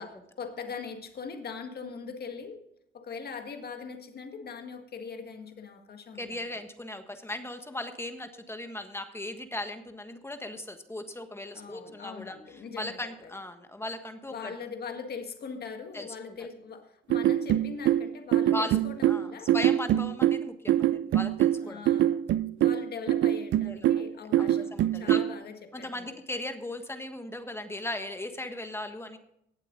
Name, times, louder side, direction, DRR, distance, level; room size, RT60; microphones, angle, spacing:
voice 1, 0.0-2.7 2.9-6.6 11.5-13.3 14.3-19.5 21.6-22.2 22.6-26.2, left 5 dB, 55° left, 6 dB, 1.7 m, -41 dB
voice 2, 6.2-14.5 15.9-16.1 18.5-21.8 23.6-24.1 24.4-25.2 25.7-29.2, left 1 dB, 10° left, 7 dB, 1.5 m, -38 dB
sound 1, 17.1-25.3, right 12 dB, 70° right, 0.4 m, -24 dB
18.5 x 7.6 x 3.9 m, 0.77 s
cardioid pair, 90°, 20 cm